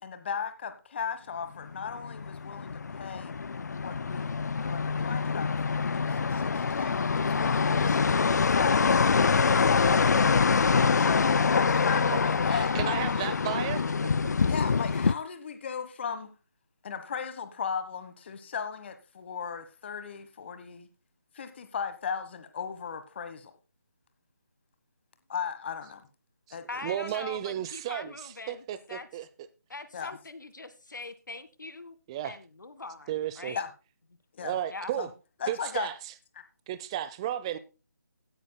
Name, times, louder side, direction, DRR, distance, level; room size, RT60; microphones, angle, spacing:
voice 1, 0.0-3.3 3.8-10.3 11.0-13.1 14.5-16.3 16.8-20.9 21.3-23.5 25.3-26.0 26.5-26.7 29.9-30.2 33.5-33.7 34.4-34.6 35.0-35.1 35.4-35.9, left 6 dB, 35° left, 1.3 m, -37 dB
sound 1, 1.7-15.1, left 5 dB, 65° left, 0.5 m, -25 dB
voice 2, 12.5-13.9 26.5-26.6 26.8-29.3 32.1-32.4 33.1-33.6 34.4-35.1 35.5-36.1 36.7-37.6, right 11 dB, 15° right, 0.6 m, -33 dB
voice 3, 26.7-29.1 29.7-31.9 32.2-33.1 33.4-33.6 34.7-34.9, left 3 dB, 80° left, 1.7 m, -42 dB
16.5 x 9.9 x 2.2 m
figure-of-eight pair, 160°, 10 cm